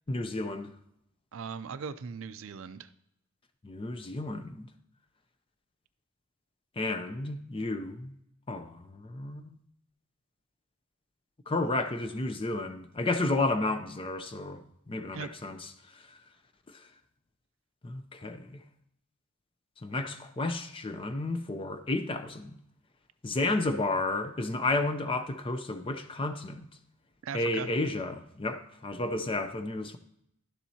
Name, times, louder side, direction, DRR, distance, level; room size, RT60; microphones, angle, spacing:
voice 1, 0.1-0.7 3.6-4.7 6.8-8.1 8.5-9.6 11.5-16.2 16.7-16.8 17.8-18.6 19.8-22.6 23.2-26.7 27.3-30.0, left 2 dB, 25° left, 0.5 m, -32 dB
voice 2, 1.3-2.9 15.1-15.3 27.2-27.7, right 6 dB, 60° right, 0.4 m, -39 dB
11.5 x 7.2 x 2.8 m
head